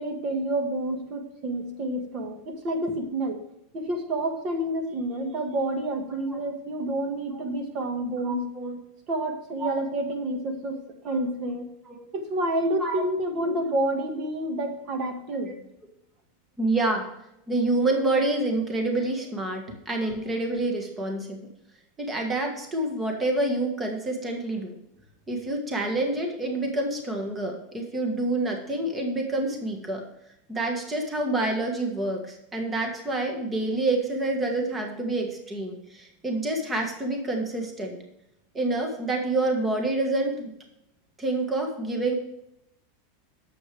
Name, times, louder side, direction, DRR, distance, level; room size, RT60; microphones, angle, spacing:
voice 1, 0.0-3.4 3.7-8.5 9.1-11.7 12.1-15.5 19.7-19.8, right 1 dB, 35° right, 5 dB, 1.6 m, -29 dB
voice 2, 8.2-8.8 9.6-9.7 11.9-12.0 12.8-13.0 13.4-13.6 16.6-17.0 17.5-21.4 22.0-24.7 25.3-30.0 30.5-38.0 38.5-40.5 41.2-42.1, right 2 dB, 15° right, 2 dB, 1.5 m, -27 dB
9.1 x 7.4 x 3.4 m, 0.81 s
supercardioid pair, 155°, 0 cm